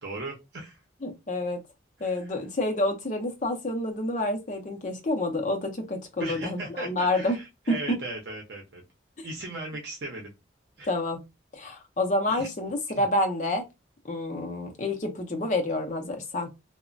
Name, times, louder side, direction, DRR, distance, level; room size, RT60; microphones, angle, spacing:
voice 1, 0.0-0.8 2.0-2.3 6.2-8.8 9.2-10.3 10.8-10.9 12.3-12.5 13.0-13.1, right 2 dB, 65° right, 0.7 m, -37 dB
voice 2, 1.0-1.6 2.0-7.4 7.7-7.8 9.2-9.3 10.9-11.2 11.5-13.6 14.0-16.5, left 1 dB, 40° left, 0.5 m, -28 dB
2.9 x 2.1 x 2.5 m
head